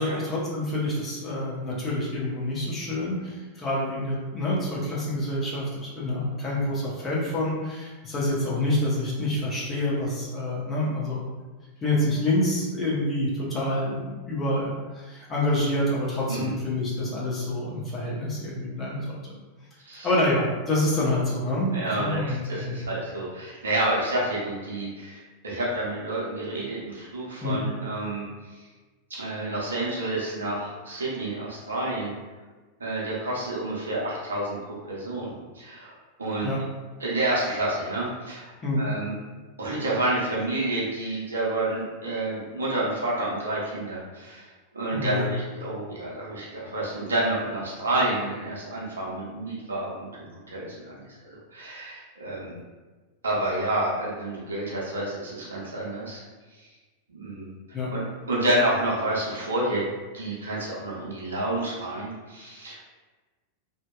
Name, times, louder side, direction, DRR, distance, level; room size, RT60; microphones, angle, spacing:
voice 1, 0.0-11.2 11.8-19.2 20.0-22.8 27.4-27.6 36.4-36.7 38.6-38.9 44.9-45.3 57.7-57.9, left 1 dB, 20° left, -6 dB, 0.8 m, -27 dB
voice 2, 21.7-28.6 29.1-32.1 32.8-36.5 37.0-38.5 38.8-39.1 39.6-44.5 44.7-52.5 53.2-56.2 57.1-57.5 57.9-58.0 58.3-59.8 60.1-62.9, right 1 dB, 70° right, -6 dB, 0.6 m, -29 dB
2.7 x 2.1 x 2.2 m, 1.3 s
figure-of-eight pair, 90°, 0 cm